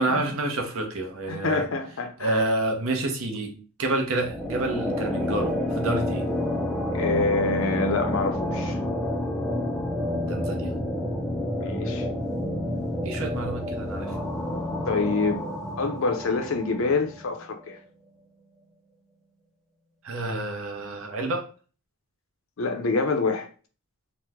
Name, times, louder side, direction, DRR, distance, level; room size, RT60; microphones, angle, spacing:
voice 1, 0.0-1.7 2.2-6.3 10.3-10.7 13.0-14.3 20.0-21.5, right 2 dB, 65° right, 0.7 m, -28 dB
voice 2, 1.3-2.4 6.9-8.8 11.6-12.1 14.9-15.5 15.8-17.8 22.6-23.5, left 3 dB, 60° left, 0.5 m, -26 dB
sound 1, 4.2-17.3, left 1 dB, ahead, 0.4 m, -29 dB
3.0 x 2.1 x 3.4 m
head